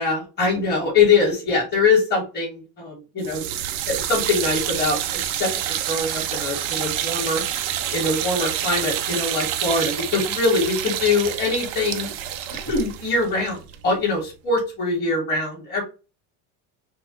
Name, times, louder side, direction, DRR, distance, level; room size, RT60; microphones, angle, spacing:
voice 1, 0.0-3.4 3.9-7.4 7.9-12.1 12.5-15.8, left 3 dB, 25° left, -2 dB, 2.6 m, -23 dB
sound 1, 3.2-14.3, right 11 dB, 60° right, 0.8 m, -28 dB
6.1 x 2.3 x 3.3 m, 0.31 s
cardioid pair, 150°, 39 cm